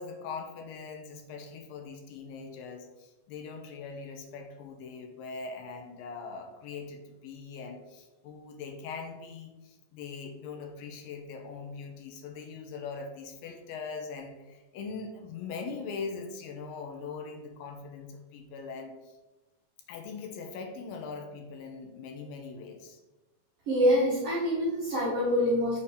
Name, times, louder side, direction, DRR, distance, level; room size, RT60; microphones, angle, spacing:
voice 1, 0.0-19.1 19.9-23.0, left 4 dB, 80° left, 3 dB, 2.4 m, -41 dB
voice 2, 23.7-25.8, equal, 60° right, -7 dB, 1.7 m, -25 dB
6.6 x 2.7 x 5.4 m, 1.1 s
omnidirectional pair, 4.2 m